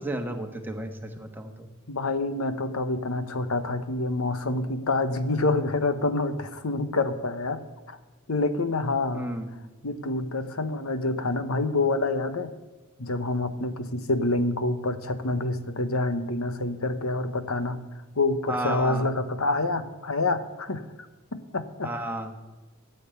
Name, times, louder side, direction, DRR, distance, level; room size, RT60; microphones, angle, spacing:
voice 1, 0.0-1.7 9.1-9.5 18.5-19.1 21.8-22.3, right 1 dB, 10° right, 4 dB, 1.3 m, -32 dB
voice 2, 1.9-7.6 7.9-8.0 8.3-9.3 9.8-12.5 13.0-17.8 18.2-20.8 21.3-21.9, left 2 dB, 75° left, 10 dB, 1.1 m, -27 dB
14.0 x 7.9 x 8.0 m, 1.2 s
head